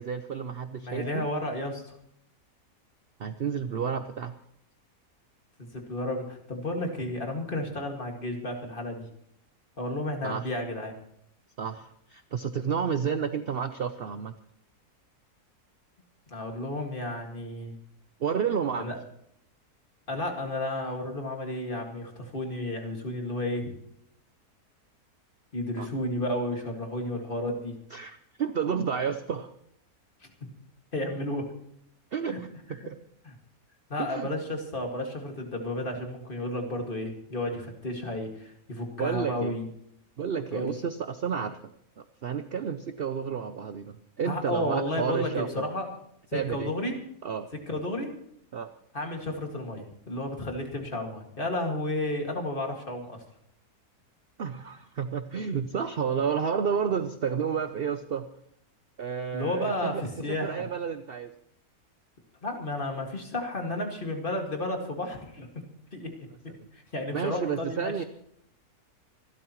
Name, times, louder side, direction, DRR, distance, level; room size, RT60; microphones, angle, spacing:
voice 1, 0.0-1.3 3.2-4.3 10.2-10.5 11.6-14.3 18.2-18.9 25.8-25.9 27.9-29.5 32.1-33.0 34.0-34.3 39.0-39.6 40.2-41.6 42.0-45.7 46.3-46.7 47.2-47.5 48.5-48.7 54.4-58.3 59.0-60.0 60.4-61.3 66.6-66.7 67.1-68.0, right 7 dB, 55° right, 10 dB, 0.7 m, -31 dB
voice 2, 0.8-1.9 5.6-9.1 9.8-11.0 16.3-17.8 18.8-19.0 20.1-23.7 25.5-27.8 30.4-30.5 30.9-31.5 32.3-32.4 32.8-32.9 33.3-33.4 33.9-39.7 40.5-40.7 44.2-45.9 46.3-46.9 47.5-48.1 48.9-53.2 59.3-60.7 62.4-65.5 65.9-66.1 66.7-67.9, left 1 dB, 35° left, 2 dB, 2.2 m, -32 dB
25.5 x 12.5 x 3.1 m, 0.72 s
omnidirectional pair, 1.7 m